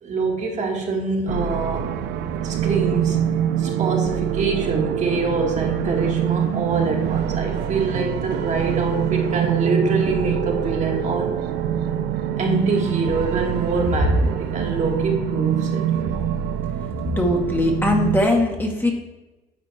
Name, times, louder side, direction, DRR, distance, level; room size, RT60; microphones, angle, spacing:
voice 1, 0.0-1.9 2.4-3.3 3.6-11.3 12.4-16.3, right 4 dB, 45° right, 1 dB, 1.4 m, -25 dB
sound 1, 1.3-18.2, right 9 dB, 80° right, 0.5 m, -24 dB
voice 2, 17.2-18.9, left 1 dB, 10° left, 1 dB, 1.0 m, -20 dB
9.4 x 4.2 x 3.2 m, 1.1 s
cardioid pair, 110°, 17 cm